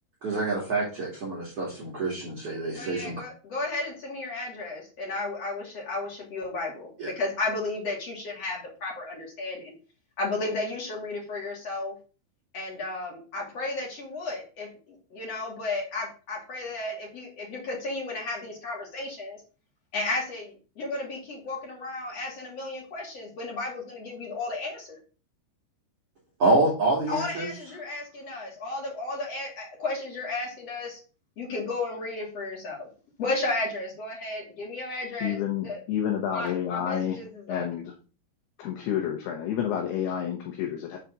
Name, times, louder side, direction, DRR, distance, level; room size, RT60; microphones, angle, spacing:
voice 1, 0.2-3.2 7.0-7.1 26.4-27.5, right 2 dB, 40° right, -5 dB, 2.2 m, -26 dB
voice 2, 2.8-6.9 7.2-9.6 10.2-11.9 12.5-19.4 19.9-25.0 27.1-31.0 31.4-32.9 33.2-35.4 35.6-35.8 36.3-37.6, left 2 dB, 45° left, -2 dB, 2.4 m, -33 dB
voice 3, 35.2-37.2 37.5-37.9 38.6-41.0, left 9 dB, 70° left, 2 dB, 2.6 m, -29 dB
7.2 x 4.1 x 6.0 m, 0.36 s
omnidirectional pair, 5.4 m